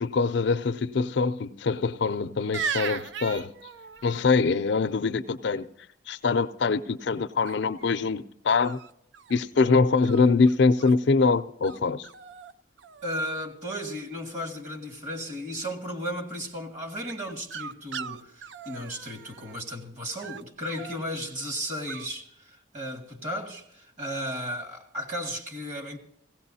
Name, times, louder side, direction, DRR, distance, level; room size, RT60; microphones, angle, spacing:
voice 1, 0.0-3.5 4.0-5.6 6.1-8.8 9.3-12.1, left 4 dB, 60° left, 0.4 m, -24 dB
sound 1, 2.5-4.3 7.4-7.9 8.6-9.4 10.0-11.0 11.6-11.8 12.0-12.5 12.8-13.4 17.1-19.6 20.1-21.0 21.9-22.1, right 7 dB, 60° right, 0.4 m, -38 dB
voice 2, 13.0-26.0, equal, 40° right, 2.0 m, -35 dB
17.0 x 16.5 x 2.8 m
head